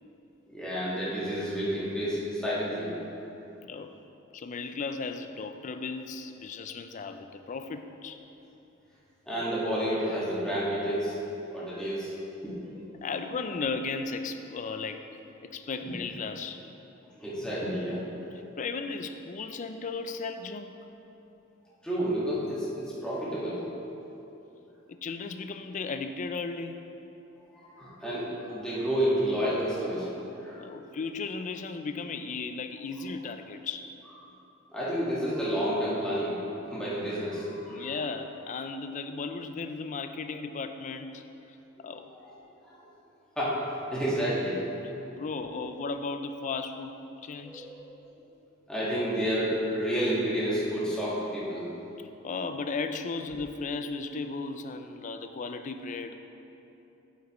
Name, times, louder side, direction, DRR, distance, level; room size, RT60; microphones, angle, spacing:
voice 1, 0.5-2.9 9.2-11.1 11.5-12.1 12.4-12.5 17.1-18.0 21.8-23.6 27.4-30.6 34.7-36.4 36.7-38.0 42.2-42.3 42.6-42.8 43.4-43.6 43.9-44.6 44.9-45.1 47.4-47.8 48.7-51.6, equal, 5° left, -9 dB, 1.7 m, -30 dB
voice 2, 3.6-3.9 4.3-8.2 13.0-15.1 15.4-16.6 18.6-20.7 24.9-26.9 30.6-33.9 37.7-41.2 41.8-42.1 45.1-47.7 52.2-56.1, left 4 dB, 40° left, 8 dB, 0.4 m, -35 dB
8.1 x 8.1 x 3.0 m, 3.0 s
head